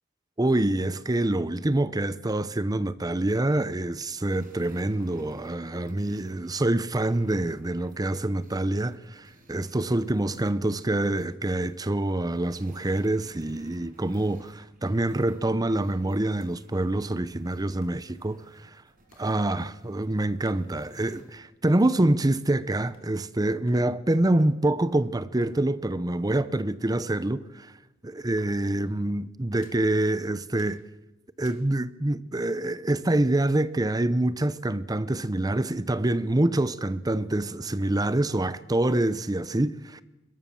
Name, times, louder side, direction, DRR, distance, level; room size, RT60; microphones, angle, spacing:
voice 1, 0.4-18.7 19.2-27.7 28.2-30.8 31.4-40.0, right 1 dB, 20° right, 0.7 m, -26 dB
sound 1, 4.2-21.4, right 2 dB, 45° right, 5.3 m, -57 dB
sound 2, 16.4-16.5 16.8-16.9 17.8-18.0 19.1-19.4 20.4-20.7 21.4-21.7 22.0-23.4 23.7-25.8 26.5-27.1 27.4-27.9 28.4-28.9 29.6-29.9 30.6-30.9 31.4-31.7, left 2 dB, 75° left, 3.0 m, -56 dB
22.5 x 20.5 x 7.1 m
head